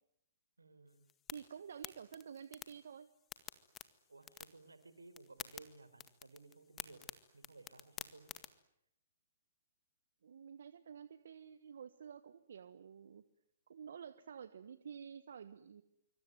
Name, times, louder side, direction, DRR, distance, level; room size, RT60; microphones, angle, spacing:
voice 1, 0.6-1.1 4.1-7.1 7.3-8.3, right 3 dB, 90° right, 12 dB, 4.0 m, -58 dB
sound 1, 0.9-8.5, left 9 dB, 20° left, 1.8 m, -52 dB
voice 2, 1.3-3.1 10.2-13.2 13.7-15.8, right 7 dB, 70° right, 13 dB, 1.3 m, -51 dB
26.0 x 24.5 x 9.4 m, 0.79 s
hypercardioid pair, 125°, 0 cm